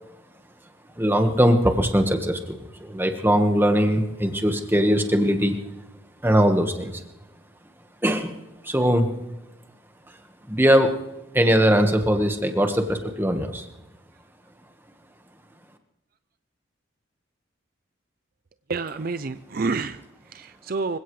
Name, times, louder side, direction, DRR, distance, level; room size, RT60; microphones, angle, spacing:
voice 1, 1.0-5.6 6.2-7.0 8.0-8.4 8.6-9.1 10.5-10.9 11.3-13.6, equal, 10° right, 5 dB, 1.4 m, -20 dB
voice 2, 18.7-21.0, right 4 dB, 45° right, 12 dB, 0.5 m, -29 dB
26.0 x 16.5 x 3.3 m, 0.97 s
head